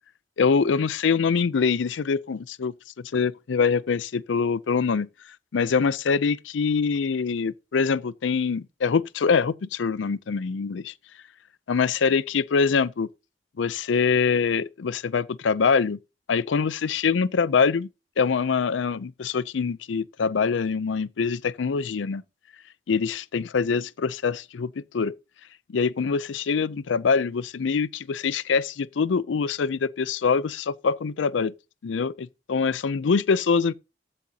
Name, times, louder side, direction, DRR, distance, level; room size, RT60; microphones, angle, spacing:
voice 1, 0.4-2.7 3.1-5.1 5.5-10.9 11.7-13.1 13.6-16.0 16.3-17.9 18.2-22.2 22.9-25.1 25.7-31.5 31.8-33.7, left 5 dB, 85° left, 0.5 m, -24 dB
15.0 x 6.6 x 2.8 m
head